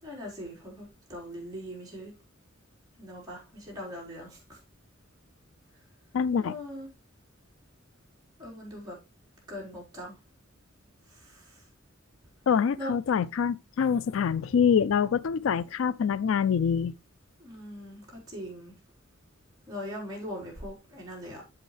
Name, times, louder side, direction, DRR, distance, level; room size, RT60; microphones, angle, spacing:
voice 1, 0.0-2.1 3.0-4.6 6.4-6.9 8.4-9.0 9.5-10.2 11.1-11.6 12.8-12.9 17.4-18.7 19.7-21.4, equal, 20° right, 4.3 m, -41 dB
voice 2, 6.1-6.6 12.5-16.9, left 7 dB, 80° left, 0.4 m, -25 dB
7.8 x 7.4 x 3.3 m
head